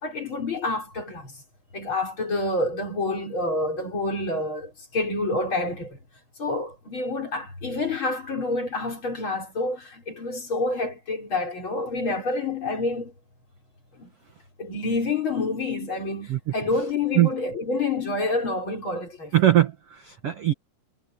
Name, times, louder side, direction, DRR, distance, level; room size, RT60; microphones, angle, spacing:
voice 1, 0.0-1.3 1.7-6.0 6.4-13.1 14.0-14.1 14.6-19.4, left 2 dB, 30° left, 5.5 m, -28 dB
voice 2, 19.3-20.5, right 13 dB, 70° right, 1.4 m, -20 dB
omnidirectional pair, 4.8 m